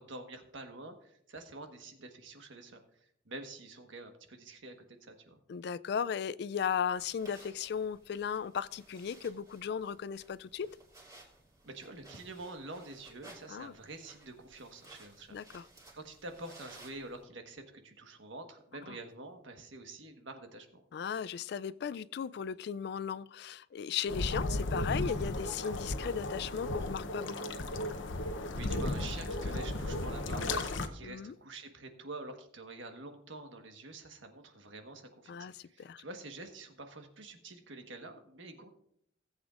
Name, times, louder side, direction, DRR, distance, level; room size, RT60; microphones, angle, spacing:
voice 1, 0.0-2.8 3.2-4.7 5.0-5.4 11.6-20.8 28.5-38.7, right 2 dB, 90° right, 5 dB, 1.4 m, -47 dB
voice 2, 5.5-10.7 13.5-13.7 15.3-15.7 18.9-19.0 20.9-27.5 31.0-31.3 35.3-36.0, left 7 dB, 60° left, 18 dB, 0.3 m, -36 dB
sound 1, 6.9-17.2, right 2 dB, 20° right, 2.6 m, -58 dB
sound 2, 24.1-30.9, left 2 dB, 90° left, 0.8 m, -35 dB
17.5 x 8.0 x 2.5 m, 0.70 s
head